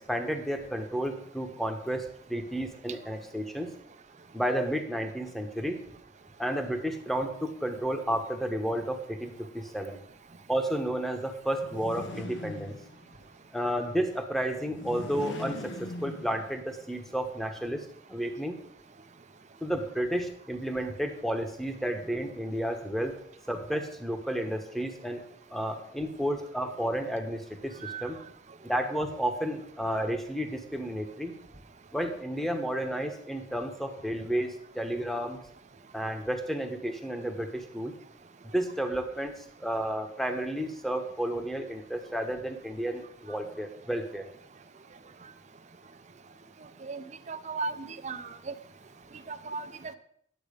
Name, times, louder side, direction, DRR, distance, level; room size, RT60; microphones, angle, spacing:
voice 1, 0.1-3.7 4.3-5.8 6.4-10.0 10.5-12.7 13.5-18.6 19.6-23.1 23.5-25.2 25.5-28.2 28.6-31.3 31.9-35.4 35.9-37.9 38.4-44.3, right 1 dB, ahead, 5 dB, 1.1 m, -32 dB
sound 1, 11.5-13.2 14.6-16.8, left 1 dB, 85° left, 1.3 m, -41 dB
voice 2, 46.8-48.5 49.3-49.7, right 4 dB, 40° right, 10 dB, 0.7 m, -36 dB
10.5 x 7.7 x 5.1 m, 0.66 s
head